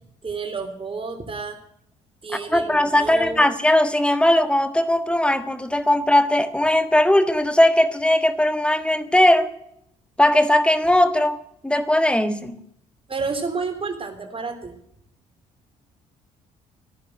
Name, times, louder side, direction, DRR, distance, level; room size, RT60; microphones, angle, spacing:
voice 1, 0.2-1.6 2.2-3.5 13.1-14.7, right 4 dB, 30° right, 6 dB, 3.4 m, -30 dB
voice 2, 2.5-9.5 10.2-11.4 11.6-12.6, left 1 dB, 5° left, 10 dB, 1.6 m, -19 dB
15.0 x 10.5 x 7.7 m, 0.74 s
figure-of-eight pair, 45°, 19 cm